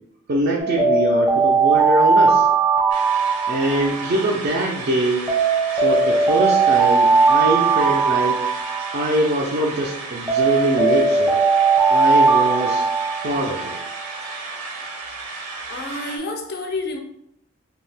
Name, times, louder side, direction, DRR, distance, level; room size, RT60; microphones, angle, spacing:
voice 1, 0.3-2.4 3.5-5.2 5.7-8.4 8.9-11.4 11.9-12.9 13.2-13.8 14.8-14.9, right 1 dB, 45° right, -2 dB, 0.4 m, -23 dB
Alarm, 0.6-4.7 5.3-9.7 10.3-14.1, right 4 dB, 10° right, 0.7 m, -19 dB
sound 1, 2.9-16.2, right 3 dB, 90° right, 0.6 m, -34 dB
voice 2, 15.7-17.0, left 2 dB, 45° left, 4 dB, 0.4 m, -29 dB
2.6 x 2.3 x 3.3 m, 0.75 s
head